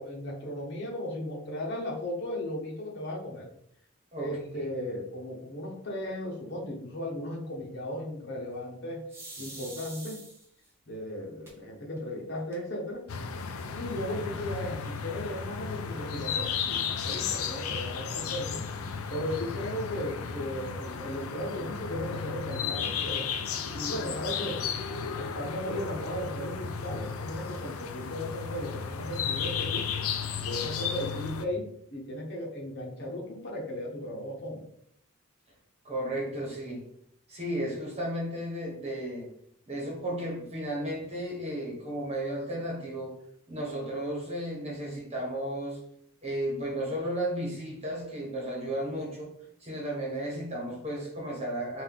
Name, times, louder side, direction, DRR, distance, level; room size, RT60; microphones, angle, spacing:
voice 1, 0.0-3.5 4.2-9.0 9.4-10.2 10.9-13.0 13.7-18.6 19.1-23.2 23.7-24.5 25.2-29.8 30.4-34.7, left 1 dB, 55° left, -2 dB, 1.2 m, -36 dB
voice 2, 4.1-4.7 35.8-36.8 37.3-39.3 39.7-43.2 43.5-45.8 46.2-49.3 49.6-51.8, right 1 dB, 30° right, -2 dB, 1.3 m, -34 dB
sound 1, 9.1-10.7 11.5-11.6 12.0-12.1 12.3-12.9, right 2 dB, 10° right, 1.0 m, -44 dB
sound 2, 13.1-31.4, left 6 dB, 85° left, 0.5 m, -34 dB
4.3 x 2.6 x 3.6 m, 0.70 s
head